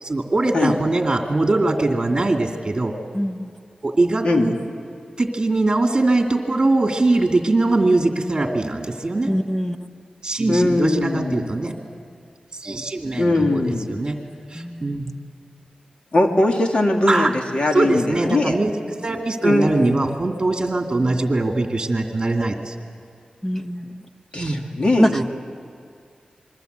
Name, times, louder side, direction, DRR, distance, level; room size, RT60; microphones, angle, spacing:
voice 1, 0.0-2.9 3.8-4.5 5.2-9.3 10.2-11.7 12.5-13.6 13.9-14.2 14.5-15.1 17.1-17.3 17.7-18.7 19.0-22.7 24.4-24.6 25.1-25.2, right 2 dB, 30° right, 3 dB, 2.4 m, -21 dB
voice 2, 3.1-3.5 9.3-9.8 14.5-15.0 23.4-24.0 25.0-25.2, equal, 10° left, 7 dB, 1.2 m, -23 dB
voice 3, 10.5-11.5 13.1-13.9 16.1-18.6 19.4-20.1 24.3-25.1, left 2 dB, 45° left, 2 dB, 2.5 m, -20 dB
27.5 x 22.0 x 8.1 m, 2.2 s
wide cardioid pair, 100°, 2 cm